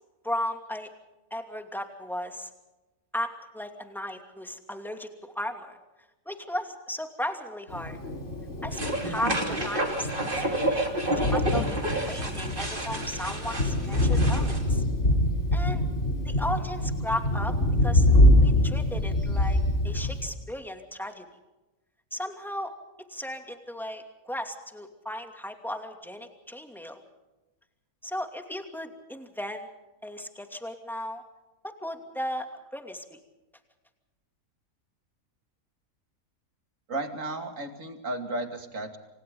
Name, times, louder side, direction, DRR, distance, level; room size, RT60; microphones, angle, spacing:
voice 1, 0.2-0.9 1.3-2.5 3.1-5.8 6.3-8.0 8.6-10.9 11.2-11.8 12.1-14.8 15.5-15.8 16.2-17.5 17.8-18.1 18.4-21.2 22.1-22.7 23.1-27.0 28.0-29.7 30.0-31.2 31.6-33.2, left 1 dB, ahead, 4 dB, 2.6 m, -35 dB
Thunder, 7.7-20.3, left 1 dB, 50° left, 3.6 m, -25 dB
sound 1, 8.7-14.6, right 1 dB, 35° right, 3.4 m, -30 dB
voice 2, 36.9-39.0, right 2 dB, 60° right, 5 dB, 3.0 m, -34 dB
29.0 x 26.5 x 3.9 m, 1.1 s
omnidirectional pair, 1.6 m